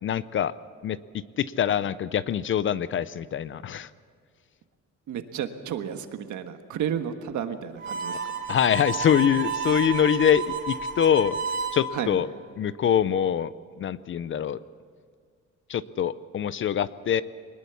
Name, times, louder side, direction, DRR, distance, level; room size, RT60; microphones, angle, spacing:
voice 1, 0.0-0.5 0.8-1.0 1.4-3.9 8.5-11.4 11.7-12.3 12.6-14.6 15.7-17.2, left 9 dB, 40° left, 17 dB, 0.5 m, -24 dB
voice 2, 5.1-8.2 11.9-12.2, right 9 dB, 70° right, 7 dB, 1.5 m, -32 dB
Harmonica, 7.8-11.8, right 5 dB, 35° right, 2.3 m, -31 dB
23.0 x 20.0 x 7.1 m, 2.1 s
cardioid pair, 180°, 31 cm